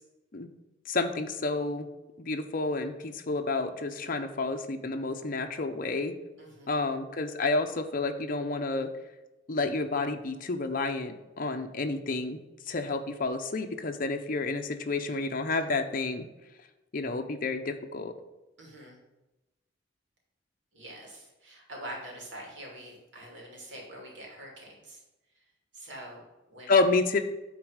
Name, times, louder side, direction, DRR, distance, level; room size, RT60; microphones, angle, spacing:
voice 1, 0.9-1.9 2.2-6.1 6.7-8.9 9.5-12.4 12.7-16.2 16.9-18.1 26.7-27.2, left 3 dB, 50° left, 5 dB, 0.7 m, -30 dB
voice 2, 6.4-6.8 15.5-15.7 18.6-19.0 20.7-25.0 25.7-26.2 26.5-26.9, right 1 dB, 75° right, -1 dB, 2.7 m, -45 dB
9.5 x 4.1 x 6.4 m, 1.0 s
head